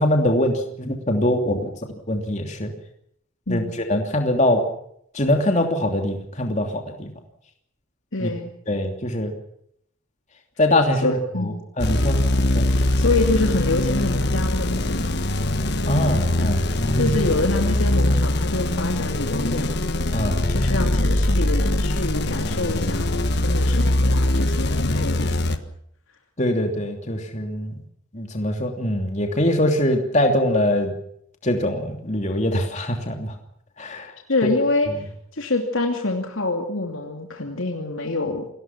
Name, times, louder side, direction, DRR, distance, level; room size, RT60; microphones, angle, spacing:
voice 1, 0.0-1.7 2.1-2.7 3.5-3.6 3.9-4.6 5.1-6.7 7.0-7.1 8.2-8.3 8.7-9.3 10.6-11.2 11.8-12.2 12.5-12.7 15.8-17.2 20.1-20.7 26.4-27.7 28.1-30.9 31.4-33.3 33.8-34.1, left 1 dB, 35° left, 3 dB, 3.0 m, -22 dB
voice 2, 3.5-3.8 8.1-8.5 11.0-11.6 12.7-15.1 15.8-15.9 16.5-19.8 20.5-25.6 34.3-38.5, left 2 dB, 70° left, 3 dB, 2.7 m, -26 dB
sound 1, 11.8-25.6, left 1 dB, 50° left, 1.5 m, -22 dB
28.5 x 20.0 x 6.0 m, 0.70 s
head